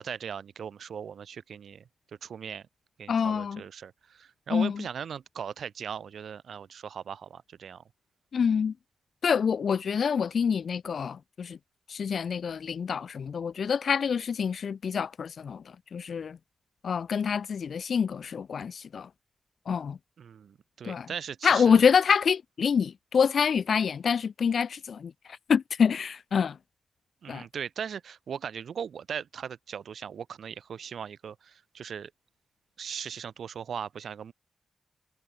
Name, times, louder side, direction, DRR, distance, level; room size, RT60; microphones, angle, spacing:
voice 1, 0.0-1.9 2.2-2.7 3.0-7.8 20.2-21.8 27.2-32.1 32.8-34.3, right 7 dB, 80° right, 3.7 m, -39 dB
voice 2, 3.1-3.6 4.5-4.8 8.3-8.7 9.2-11.6 11.9-15.6 15.9-16.4 16.8-19.1 19.7-20.0 20.8-21.1 21.4-26.6 27.3-27.4, left 6 dB, 65° left, 1.1 m, -26 dB
wide cardioid pair, 115°, 0 cm